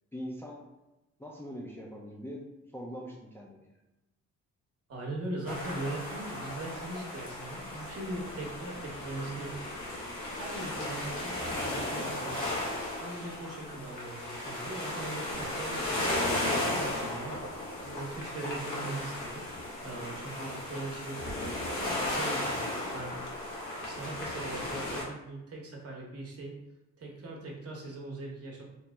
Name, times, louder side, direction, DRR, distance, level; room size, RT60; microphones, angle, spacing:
voice 1, 0.1-0.6 1.2-3.7, equal, 10° left, -3 dB, 0.4 m, -42 dB
voice 2, 4.9-9.8 10.3-12.5 13.0-17.4 17.8-19.4 19.8-21.2 21.8-23.2 23.8-26.6 27.0-28.7, right 2 dB, 50° right, -1 dB, 1.0 m, -40 dB
sound 1, 5.5-25.0, left 1 dB, 90° left, 0.9 m, -35 dB
2.9 x 2.0 x 3.4 m, 0.97 s
cardioid pair, 90°, 30 cm